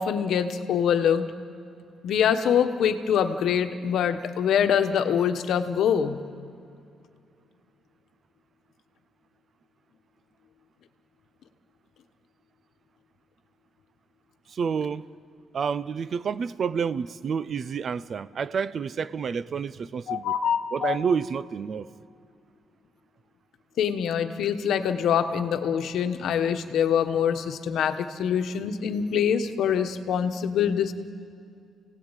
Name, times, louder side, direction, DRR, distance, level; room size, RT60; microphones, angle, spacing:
voice 1, 0.0-1.3 2.0-6.2 20.1-21.0 23.8-30.9, left 8 dB, 70° left, 8 dB, 1.2 m, -24 dB
voice 2, 14.5-15.1 15.5-20.3 20.7-21.9, right 6 dB, 40° right, 16 dB, 0.5 m, -29 dB
29.5 x 17.5 x 9.0 m, 2.5 s
cardioid pair, 160°, 0 cm